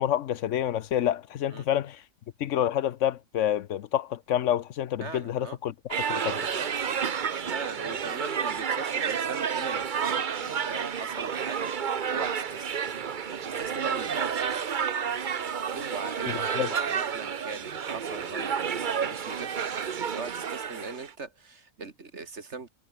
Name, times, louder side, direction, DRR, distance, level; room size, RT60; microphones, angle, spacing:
voice 1, 0.0-2.0 2.4-5.7 6.1-6.5 16.3-16.7, left 11 dB, 80° left, 1.1 m, -28 dB
voice 2, 5.0-5.6 6.5-6.7 7.5-11.7 12.1-12.8 13.4-14.3 15.7-22.7, right 4 dB, 65° right, 2.5 m, -40 dB
sound 1, 5.9-21.1, right 7 dB, 45° right, 0.9 m, -30 dB
omnidirectional pair, 1.3 m